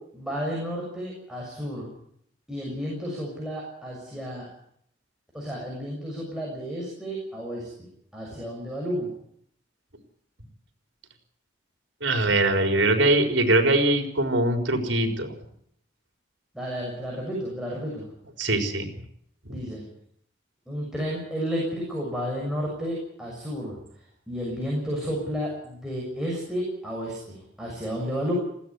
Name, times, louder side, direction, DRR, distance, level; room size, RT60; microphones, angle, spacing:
voice 1, 0.0-1.9 2.5-4.5 5.3-7.9 8.1-9.1 16.5-18.1 19.5-19.9 20.7-28.3, equal, 5° right, -4 dB, 6.7 m, -32 dB
voice 2, 12.0-15.3 18.4-18.9 19.4-19.6, right 2 dB, 75° right, 5 dB, 4.4 m, -22 dB
20.5 x 16.0 x 9.5 m, 0.70 s
head